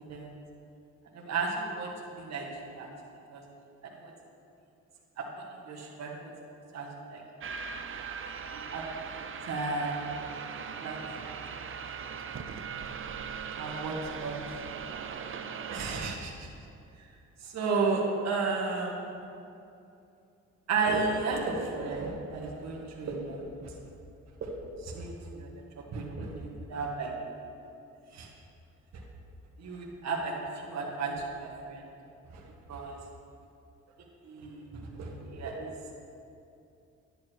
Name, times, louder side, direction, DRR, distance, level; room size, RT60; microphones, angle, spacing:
voice 1, 1.1-1.9 2.2-2.9 3.3-3.4 4.0-4.1 5.2-5.3 5.7-6.3 6.7-7.2 8.5-8.8 9.5-10.3 10.8-11.3 13.6-14.3 15.7-16.5 17.4-19.0 20.7-23.4 24.8-25.1 25.4-25.5 25.9-27.1 28.1-28.3 29.6-30.3 30.6-31.1 31.4-31.8 32.7-33.0 34.3-34.7 35.0-35.7, right 4 dB, 60° right, -2 dB, 2.0 m, -33 dB
sound 1, 7.4-16.2, right 6 dB, 45° right, 0.8 m, -39 dB
11.0 x 10.5 x 4.7 m, 2.6 s
cardioid pair, 90°, 30 cm